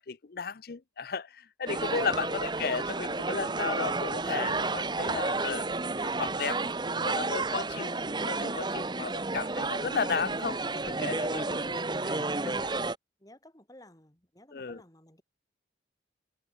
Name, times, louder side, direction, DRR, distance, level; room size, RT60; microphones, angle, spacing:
voice 1, 0.0-5.7 6.0-12.7 14.5-14.8, left 5 dB, 55° left, 0.6 m, -35 dB
sound 1, 1.7-13.0, right 3 dB, 25° right, 1.0 m, -31 dB
voice 2, 13.2-15.2, left 1 dB, 20° left, 3.9 m, -54 dB
head